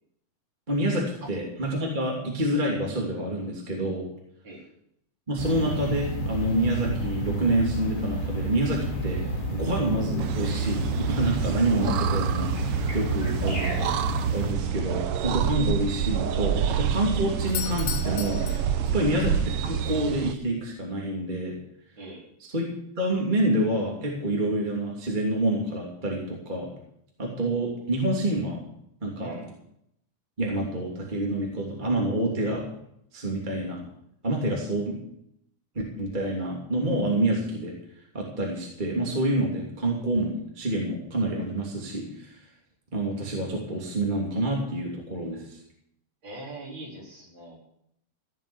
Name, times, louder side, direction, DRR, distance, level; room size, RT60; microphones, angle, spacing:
voice 1, 0.7-4.1 5.3-9.2 9.5-13.7 14.3-18.4 18.9-21.5 22.4-22.7 23.0-26.7 27.2-28.6 29.0-29.4 30.4-32.7 33.1-33.8 34.2-35.0 36.0-37.7 38.1-42.4 42.9-45.6, right 1 dB, 15° right, -2 dB, 2.7 m, -27 dB
sound 1, 5.4-14.5, right 2 dB, 15° left, 2.9 m, -29 dB
sound 2, 10.2-20.3, right 8 dB, 75° right, 1.3 m, -28 dB
Doorbell, 17.4-19.4, left 10 dB, 85° left, 2.7 m, -36 dB
voice 2, 22.0-22.3 29.2-29.5 46.2-47.6, right 2 dB, 35° right, -2 dB, 4.5 m, -42 dB
16.5 x 7.6 x 8.5 m, 0.74 s
omnidirectional pair, 3.7 m